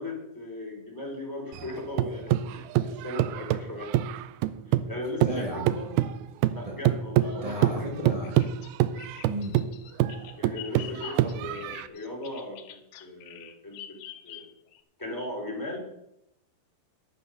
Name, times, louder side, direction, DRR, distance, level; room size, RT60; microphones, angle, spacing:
voice 1, 0.0-3.9 4.7-5.9 6.5-7.7 10.4-14.0 14.2-14.5 15.0-15.8, left 1 dB, 5° left, -1 dB, 3.1 m, -38 dB
sound 1, 1.5-4.9 5.2-11.9, right 13 dB, 80° right, 2.4 m, -26 dB
voice 2, 5.2-6.1 6.6-6.7 7.4-8.5 9.3-9.6 11.2-11.7, equal, 60° right, -1 dB, 0.3 m, -35 dB
Bird vocalization bird call bird song, 8.2-14.8, left 12 dB, 80° left, 2.7 m, -45 dB
11.5 x 8.6 x 6.4 m, 0.80 s
omnidirectional pair, 4.6 m